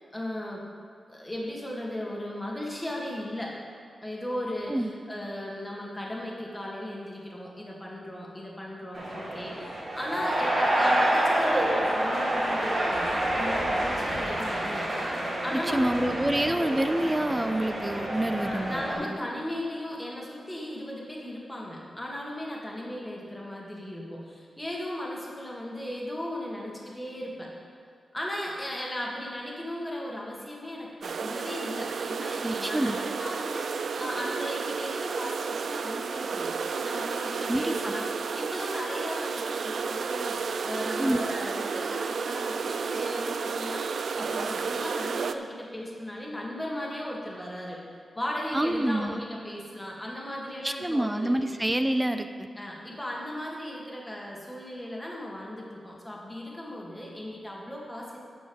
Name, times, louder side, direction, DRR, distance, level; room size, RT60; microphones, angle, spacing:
voice 1, 0.1-0.6 1.1-3.6 4.0-14.9 15.4-15.9 18.4-27.5 28.1-36.5 36.8-47.8 48.2-51.3 52.6-58.2, left 1 dB, 10° left, -3 dB, 1.9 m, -36 dB
sound 1, 8.9-18.9, right 1 dB, 55° right, 3.1 m, -28 dB
voice 2, 15.5-19.1 32.4-33.0 37.5-37.9 41.0-41.3 48.5-49.2 50.6-52.5, right 1 dB, 10° right, 9 dB, 0.5 m, -27 dB
sound 2, 31.0-45.3, right 5 dB, 75° right, 0.4 m, -32 dB
9.3 x 6.4 x 7.1 m, 2.1 s
wide cardioid pair, 120°, 0 cm